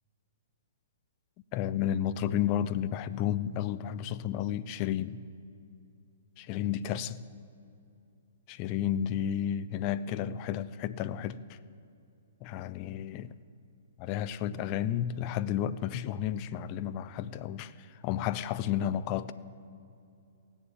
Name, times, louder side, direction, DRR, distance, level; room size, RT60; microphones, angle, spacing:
voice 1, 1.5-5.2 6.4-7.2 8.5-11.6 12.4-13.3 14.0-19.3, left 10 dB, 35° left, 0.5 m, -32 dB
17.0 x 7.1 x 9.3 m
hypercardioid pair, 140°, 0 cm